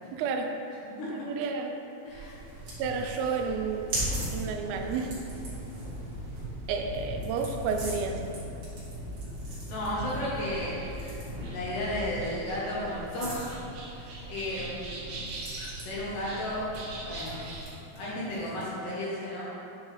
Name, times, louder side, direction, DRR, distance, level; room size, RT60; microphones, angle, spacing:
voice 1, 0.1-0.6 1.0-1.8 2.8-3.9 4.3-5.1 6.7-8.2, right 5 dB, 90° right, 4 dB, 2.6 m, -31 dB
voice 2, 2.0-2.4 9.7-11.2 11.5-13.6 14.0-15.1 15.8-16.6 17.0-17.4 17.9-19.4, left 1 dB, 75° left, -7 dB, 2.1 m, -34 dB
sound 1, 2.1-17.7, right 2 dB, 70° right, 2.0 m, -44 dB
sound 2, 2.2-18.8, right 1 dB, 50° right, 1.7 m, -40 dB
sound 3, 4.8-12.2, left 2 dB, 90° left, 1.9 m, -43 dB
8.7 x 3.8 x 3.0 m, 3.0 s
omnidirectional pair, 4.6 m